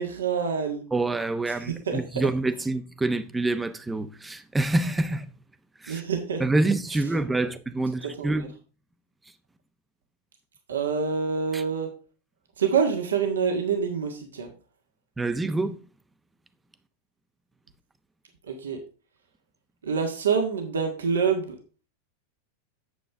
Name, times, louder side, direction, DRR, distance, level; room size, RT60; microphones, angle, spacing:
voice 1, 0.0-0.8 1.5-2.3 5.9-6.4 6.9-7.0 7.4-7.5 8.0-8.5 10.7-11.9 12.6-14.5 18.4-18.8 19.8-21.6, right 6 dB, 85° right, 1.6 m, -27 dB
voice 2, 0.9-5.3 5.8-6.0 6.4-8.5 11.5-11.6 15.2-15.8, right 2 dB, 10° right, 0.9 m, -26 dB
9.0 x 6.7 x 3.6 m
hypercardioid pair, 100°, 0 cm